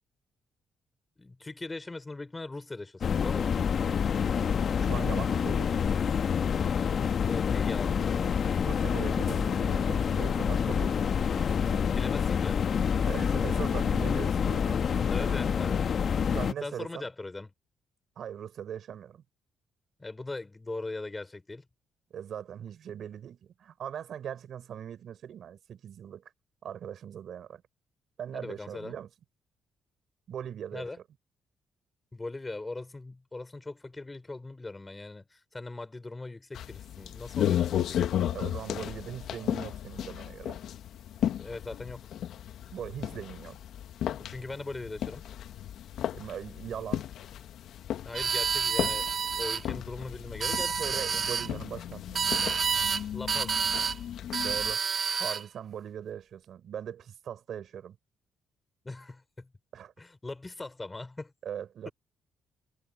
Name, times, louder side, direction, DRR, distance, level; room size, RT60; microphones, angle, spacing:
voice 1, 1.2-3.5 7.2-8.4 11.9-12.6 15.1-15.9 16.6-17.5 20.0-21.6 28.3-28.9 30.7-31.0 32.1-38.1 41.4-42.1 44.2-45.2 48.0-49.1 49.4-51.2 53.1-53.6 58.8-59.5 60.0-61.3, left 2 dB, 20° left, 4.8 m, -40 dB
sound 1, 3.0-16.5, left 7 dB, 55° left, 1.0 m, -27 dB
voice 2, 4.8-5.8 8.6-11.8 13.0-14.8 15.3-15.4 16.3-17.1 18.2-19.2 22.1-26.3 26.6-27.6 28.2-29.1 30.3-30.9 38.3-40.6 42.7-43.6 46.1-47.0 50.8-52.5 54.4-54.8 55.2-58.0 59.7-59.9 61.4-61.9, right 9 dB, 65° right, 6.3 m, -40 dB
sound 2, 36.5-54.7, left 10 dB, 75° left, 1.2 m, -35 dB
sound 3, 48.1-49.6 50.3-51.5 52.2-53.0 53.3-54.0 54.3-55.4, right 6 dB, 45° right, 0.3 m, -29 dB
cardioid pair, 90°, 0 cm